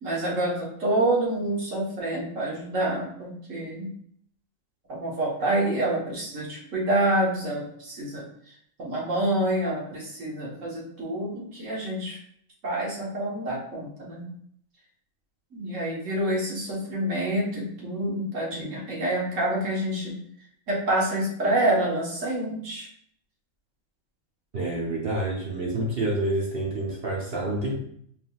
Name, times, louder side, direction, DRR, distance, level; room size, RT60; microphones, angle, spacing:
voice 1, 0.0-3.9 4.9-8.2 8.8-12.2 12.6-14.3 15.5-20.2 20.7-22.9, right 1 dB, 70° right, -3 dB, 1.5 m, -27 dB
voice 2, 24.5-27.7, right 2 dB, 50° right, -4 dB, 1.1 m, -28 dB
4.8 x 3.6 x 2.3 m, 0.65 s
omnidirectional pair, 1.4 m